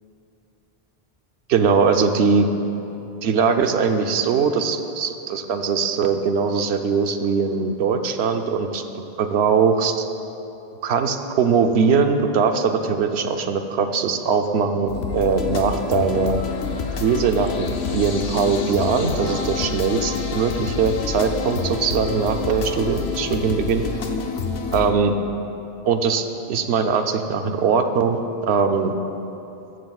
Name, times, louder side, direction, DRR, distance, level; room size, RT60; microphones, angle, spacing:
voice 1, 1.5-2.5 3.2-8.8 9.2-10.0 10.8-16.4 17.0-23.8 24.7-25.1 25.8-28.2 28.5-28.9, right 5 dB, 85° right, 6 dB, 1.0 m, -21 dB
sound 1, 14.9-24.9, left 5 dB, 80° left, 1.0 m, -28 dB
14.0 x 14.0 x 2.4 m, 2.9 s
omnidirectional pair, 1.1 m